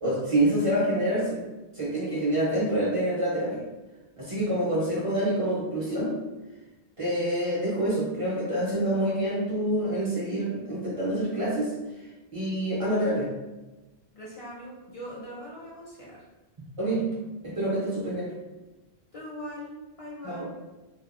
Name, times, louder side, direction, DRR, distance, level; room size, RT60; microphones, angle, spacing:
voice 1, 0.0-1.4 1.7-3.6 4.2-6.1 7.0-11.7 12.3-13.3 16.8-17.1 17.4-18.3 20.2-20.5, right 1 dB, 40° right, -6 dB, 0.5 m, -27 dB
voice 2, 14.1-16.2 19.1-20.5, equal, 45° left, -5 dB, 0.5 m, -41 dB
2.8 x 2.2 x 2.4 m, 1.1 s
omnidirectional pair, 1.0 m